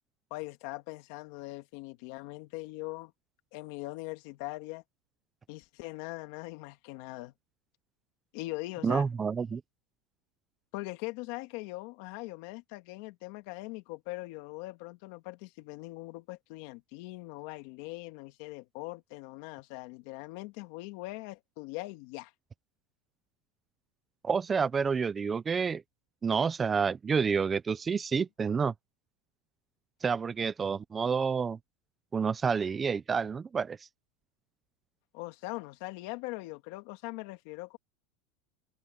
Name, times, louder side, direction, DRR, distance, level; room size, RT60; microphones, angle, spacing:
voice 1, 0.3-3.1 3.5-4.8 5.5-7.3 8.3-9.1 10.7-22.3 35.1-37.8, left 21 dB, 50° left, 2.1 m, -41 dB
voice 2, 8.8-9.6 24.2-25.8 26.2-28.7 30.0-31.6 32.1-33.8, right 6 dB, 15° right, 0.5 m, -29 dB
open air
supercardioid pair, 170°, 0 cm